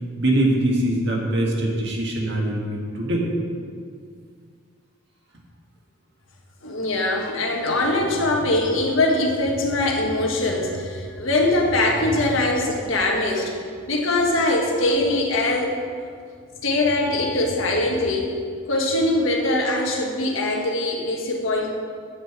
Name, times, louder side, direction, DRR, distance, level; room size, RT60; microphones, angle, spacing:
voice 1, 0.2-3.2, right 1 dB, 55° right, -1 dB, 1.8 m, -22 dB
voice 2, 6.6-13.5 13.9-15.7 16.6-18.3 18.7-21.7, left 2 dB, 70° left, 0 dB, 1.6 m, -22 dB
9.3 x 5.5 x 8.0 m, 2.1 s
head